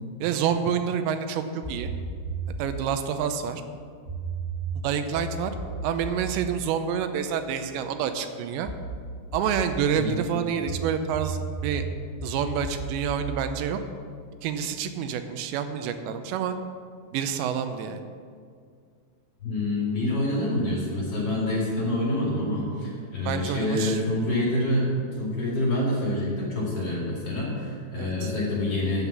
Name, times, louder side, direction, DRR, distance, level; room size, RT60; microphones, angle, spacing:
voice 1, 0.2-1.9 2.6-3.6 4.8-5.5 5.8-8.7 9.3-11.8 12.2-13.8 14.4-16.6 17.1-18.0 23.3-24.0 28.0-28.3, right 7 dB, 85° right, 8 dB, 3.0 m, -28 dB
sound 1, 1.6-2.9 4.0-7.8 8.6-9.9 10.6-14.6, right 4 dB, 35° right, 0.9 m, -35 dB
voice 2, 19.4-29.1, left 1 dB, 40° left, -5 dB, 2.9 m, -27 dB
9.8 x 7.3 x 8.2 m, 2.1 s
omnidirectional pair, 5.1 m